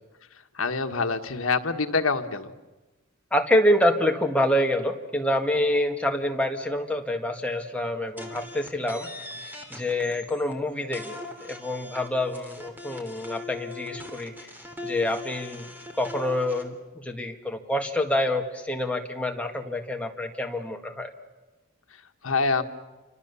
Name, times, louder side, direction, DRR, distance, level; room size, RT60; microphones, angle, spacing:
voice 1, 0.5-2.5 22.2-22.6, left 4 dB, 80° left, 6 dB, 1.4 m, -25 dB
voice 2, 3.3-9.1 9.4-14.5 14.8-15.7 16.0-21.1, left 1 dB, 5° left, 2 dB, 1.9 m, -27 dB
sound 1, 8.2-10.5 10.9-16.6, left 2 dB, 10° right, 3.0 m, -40 dB
28.5 x 25.5 x 7.0 m, 1.1 s
head